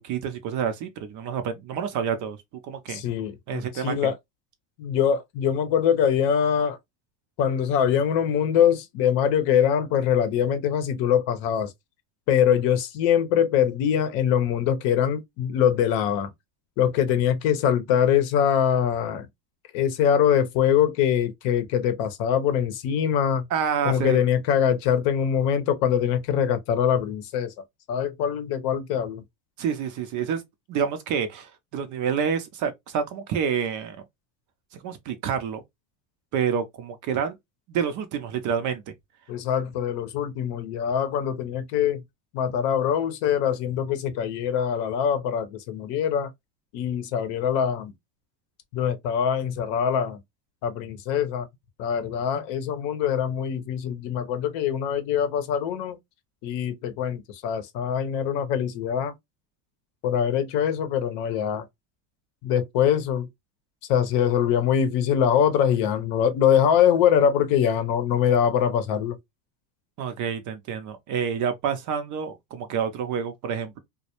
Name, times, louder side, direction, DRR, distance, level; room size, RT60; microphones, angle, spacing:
voice 1, 0.0-2.4 2.6-3.0 3.5-4.1 23.5-24.2 29.6-30.4 30.7-34.0 34.8-35.6 36.3-37.3 37.7-38.8 70.0-73.8, right 7 dB, 40° right, 0.4 m, -28 dB
voice 2, 2.9-4.1 4.8-6.8 7.4-11.7 12.3-16.3 16.8-19.3 19.7-23.5 23.8-27.5 27.9-29.2 39.3-42.0 42.3-46.3 46.7-47.9 48.7-50.2 50.6-51.5 51.8-56.0 56.4-59.1 60.0-61.7 62.4-63.3 63.9-69.2, left 8 dB, 60° left, 0.7 m, -23 dB
2.2 x 2.1 x 2.8 m
supercardioid pair, 110°, 50 cm